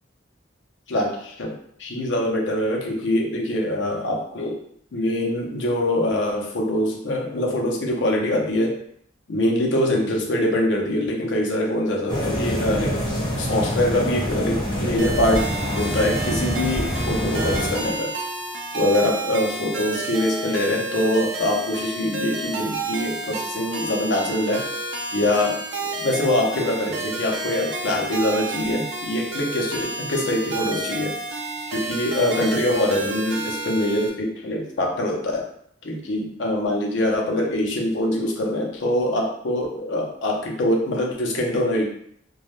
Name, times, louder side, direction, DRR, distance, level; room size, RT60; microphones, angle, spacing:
voice 1, 0.9-4.6 4.9-8.8 9.3-18.2 18.7-24.6 25.1-31.2 31.7-35.5 35.8-41.9, left 1 dB, 70° left, 0 dB, 0.5 m, -24 dB
sound 1, 12.1-18.0, equal, 25° left, 0.5 m, -26 dB
sound 2, 15.0-34.1, right 2 dB, 70° right, 0.5 m, -30 dB
2.2 x 2.0 x 3.0 m, 0.65 s
head